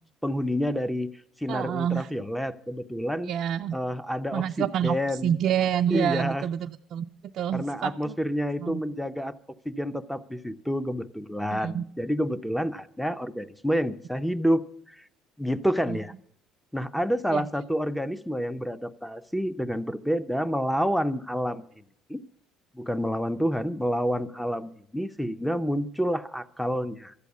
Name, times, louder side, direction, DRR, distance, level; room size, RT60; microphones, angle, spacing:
voice 1, 0.2-1.1 1.4-3.3 3.7-5.4 5.9-6.4 7.5-9.3 9.6-15.0 15.4-16.1 16.7-21.6 22.1-22.2 22.7-27.1, equal, ahead, 13 dB, 0.7 m, -28 dB
voice 2, 1.5-2.1 3.2-3.8 4.3-7.1 7.3-8.1 8.6-8.8 11.5-11.8 15.9-16.0 17.3-17.5, right 9 dB, 60° right, 4 dB, 0.4 m, -28 dB
13.0 x 8.3 x 8.1 m, 0.67 s
supercardioid pair, 85°, 0 cm